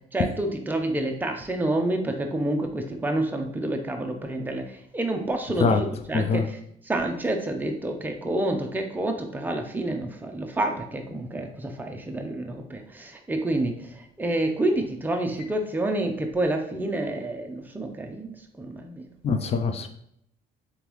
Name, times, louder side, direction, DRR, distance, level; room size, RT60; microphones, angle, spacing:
voice 1, 0.1-4.6 4.9-6.4 6.9-13.7 14.2-19.0, right 1 dB, 10° right, 3 dB, 0.6 m, -28 dB
voice 2, 6.1-6.5 19.2-19.9, left 4 dB, 40° left, 6 dB, 0.5 m, -23 dB
3.8 x 3.4 x 3.0 m, 0.73 s
cardioid pair, 110°, 17 cm